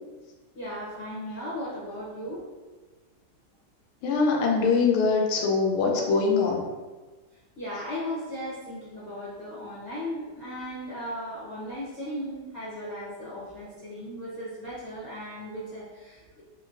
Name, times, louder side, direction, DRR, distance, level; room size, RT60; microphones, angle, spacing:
voice 1, 0.5-2.4 7.6-16.4, equal, 55° left, -11 dB, 0.7 m, -36 dB
voice 2, 4.0-6.7, left 4 dB, 80° left, 1 dB, 1.4 m, -23 dB
3.8 x 2.1 x 2.5 m, 1.3 s
omnidirectional pair, 2.3 m